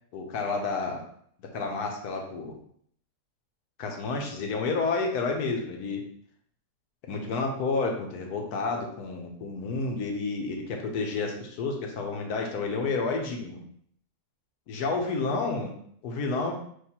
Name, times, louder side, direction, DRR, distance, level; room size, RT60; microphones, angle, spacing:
voice 1, 0.1-1.0 1.4-2.6 3.8-6.0 7.0-13.6 14.7-15.7 16.0-16.5, left 4 dB, 85° left, 2 dB, 1.3 m, -30 dB
6.4 x 2.6 x 2.9 m, 0.65 s
omnidirectional pair, 1.6 m